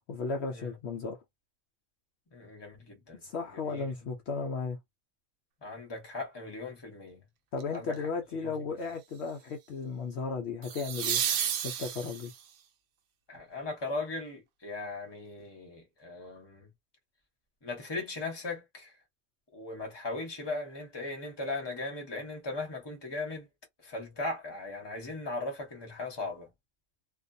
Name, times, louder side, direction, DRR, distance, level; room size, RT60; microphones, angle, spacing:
voice 1, 0.1-1.2 3.2-4.8 7.5-11.2 11.6-12.3, left 4 dB, 65° left, 0.8 m, -35 dB
voice 2, 2.3-3.2 3.5-3.9 5.6-7.2 7.7-8.1 8.4-8.8 13.3-16.7 17.6-19.0 19.5-23.5 23.8-26.5, left 2 dB, 20° left, 1.0 m, -38 dB
sound 1, 7.6-7.9 10.6-12.5 15.4-15.5, right 9 dB, 80° right, 1.0 m, -32 dB
2.4 x 2.3 x 2.6 m
omnidirectional pair, 1.3 m